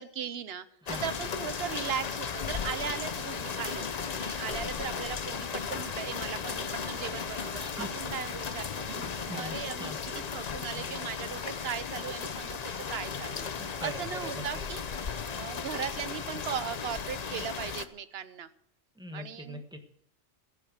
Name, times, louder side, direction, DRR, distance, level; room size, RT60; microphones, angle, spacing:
voice 1, 0.0-0.7 1.0-3.9 4.2-14.8 15.3-18.5 19.1-19.6, right 8 dB, 60° right, 13 dB, 1.0 m, -38 dB
sound 1, 0.9-17.9, left 6 dB, 40° left, 0.6 m, -36 dB
sound 2, 2.7-9.6, left 1 dB, 75° left, 2.9 m, -54 dB
voice 2, 8.9-10.0 13.6-14.6 19.0-19.8, equal, 5° right, 4 dB, 1.3 m, -42 dB
15.5 x 8.5 x 6.5 m, 0.73 s
omnidirectional pair, 1.3 m